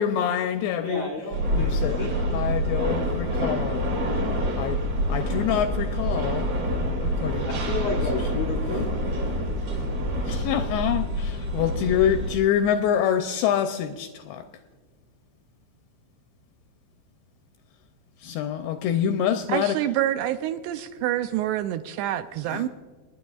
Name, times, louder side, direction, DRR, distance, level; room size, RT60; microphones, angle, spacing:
voice 1, 0.0-1.1 1.6-2.0 2.3-3.9 4.6-4.8 5.1-6.5 7.0-7.5 8.3-8.4 10.3-14.5 18.2-19.8 22.5-22.7, left 9 dB, 85° left, 8 dB, 2.4 m, -26 dB
voice 2, 0.8-2.6 7.4-8.9, left 3 dB, 65° left, -1 dB, 1.7 m, -33 dB
sound 1, 1.3-12.4, equal, 45° right, 3.2 m, -27 dB
voice 3, 19.5-22.7, right 12 dB, 85° right, 9 dB, 2.5 m, -27 dB
29.5 x 10.0 x 2.3 m, 1.5 s
omnidirectional pair, 5.1 m